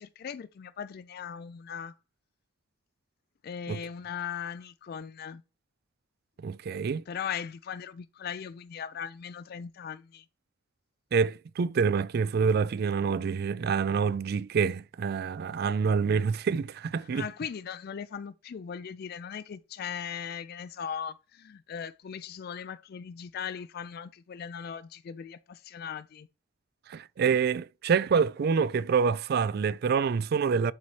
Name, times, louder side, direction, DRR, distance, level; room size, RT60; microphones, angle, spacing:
voice 1, 0.0-1.9 3.4-5.4 7.1-10.3 17.0-26.3, left 7 dB, 50° left, 0.3 m, -39 dB
voice 2, 6.4-7.0 11.1-17.2 26.9-30.7, right 6 dB, 50° right, 0.3 m, -27 dB
11.5 x 4.1 x 3.1 m
head